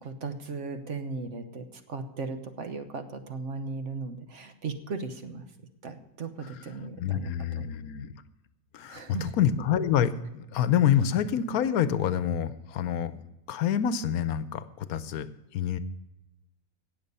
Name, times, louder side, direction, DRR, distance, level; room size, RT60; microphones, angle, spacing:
voice 1, 0.0-5.4 5.8-7.7 8.9-9.3, right 4 dB, 55° right, 8 dB, 1.2 m, -37 dB
voice 2, 7.0-8.1 8.7-13.2 13.5-15.3 15.5-15.8, left 9 dB, 85° left, 14 dB, 1.1 m, -27 dB
17.5 x 6.9 x 5.4 m, 0.96 s
omnidirectional pair, 1.5 m